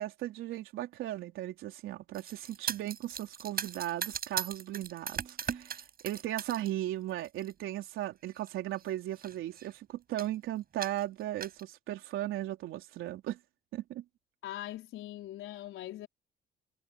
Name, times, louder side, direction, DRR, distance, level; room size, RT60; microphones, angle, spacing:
voice 1, 0.0-13.4 13.7-14.0, right 14 dB, 90° right, 3.7 m, -37 dB
sound 1, 2.1-6.7 7.1-7.5 8.4-8.5 8.8-8.9 9.1-9.7 10.2-10.4 10.8-11.6, right 7 dB, 50° right, 6.0 m, -39 dB
voice 2, 14.4-16.1, left 13 dB, 85° left, 4.5 m, -41 dB
cardioid pair, 90°, 20 cm